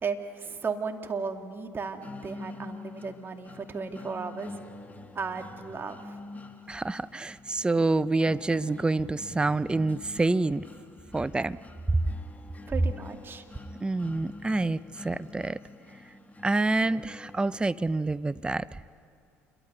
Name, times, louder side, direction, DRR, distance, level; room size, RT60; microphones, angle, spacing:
voice 1, 0.0-4.6 5.1-6.2 12.7-13.4, right 5 dB, 30° right, 5 dB, 2.3 m, -35 dB
sound 1, 2.0-18.0, left 3 dB, 20° left, 1.6 m, -47 dB
voice 2, 6.7-10.6 11.1-11.6 13.8-15.6 16.4-18.8, right 2 dB, 15° right, 17 dB, 0.6 m, -27 dB
28.0 x 22.5 x 6.8 m, 2.3 s
hypercardioid pair, 60°, 7 cm